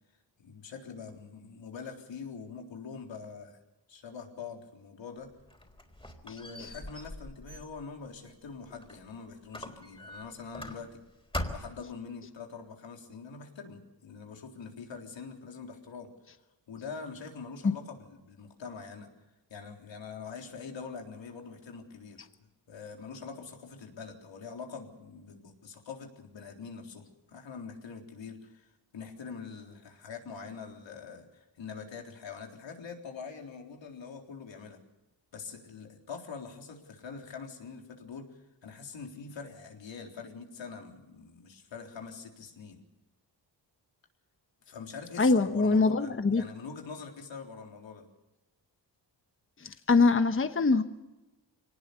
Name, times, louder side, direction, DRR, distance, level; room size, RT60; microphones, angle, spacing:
voice 1, 0.4-3.6 3.9-5.3 6.2-11.0 11.5-16.1 16.7-19.1 19.5-22.3 22.7-34.8 35.3-38.3 38.6-42.8 44.7-48.1, left 5 dB, 85° left, 2 dB, 3.9 m, -44 dB
Squeak, 5.3-9.1 9.5-11.0 11.3-11.9, left 1 dB, 10° left, 3.9 m, -41 dB
voice 2, 45.2-46.4 49.6-50.8, left 3 dB, 30° left, 9 dB, 1.1 m, -23 dB
24.0 x 19.0 x 6.9 m, 1.0 s
cardioid pair, 85°, 44 cm